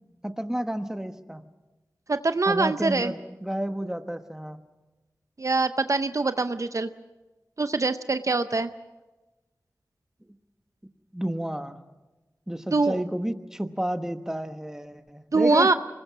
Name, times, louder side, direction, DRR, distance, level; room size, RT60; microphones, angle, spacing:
voice 1, 0.2-1.4 2.5-4.6 11.1-11.8 12.5-15.7, right 1 dB, 10° right, 8 dB, 1.2 m, -31 dB
voice 2, 2.1-3.1 5.4-6.9 7.6-8.7 12.7-13.0 15.3-15.7, right 3 dB, 55° right, 11 dB, 0.6 m, -23 dB
24.5 x 21.0 x 6.1 m, 1.1 s
wide cardioid pair, 60°, 7 cm